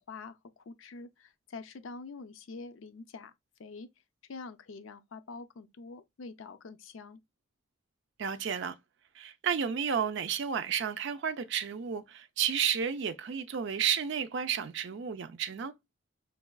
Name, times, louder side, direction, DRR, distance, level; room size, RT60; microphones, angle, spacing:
voice 1, 0.0-3.3 3.6-3.9 4.3-7.2, left 4 dB, 80° left, 0.5 m, -46 dB
voice 2, 8.2-8.8 9.2-15.7, right 7 dB, 60° right, 0.4 m, -32 dB
5.3 x 2.3 x 2.2 m
head